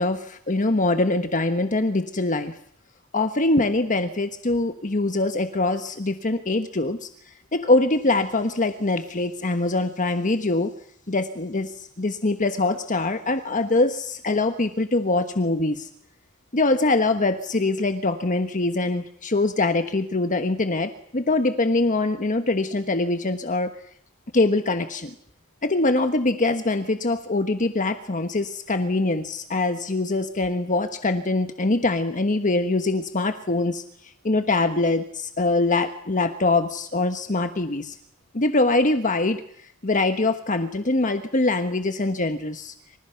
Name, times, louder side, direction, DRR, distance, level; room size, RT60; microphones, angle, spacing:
voice 1, 0.0-2.5 3.1-7.1 7.5-10.7 11.1-15.9 16.5-23.7 24.3-25.1 25.6-33.8 34.2-38.0 38.3-39.4 39.8-42.7, left 2 dB, 35° left, 8 dB, 1.3 m, -23 dB
27.5 x 26.5 x 5.8 m, 0.67 s
head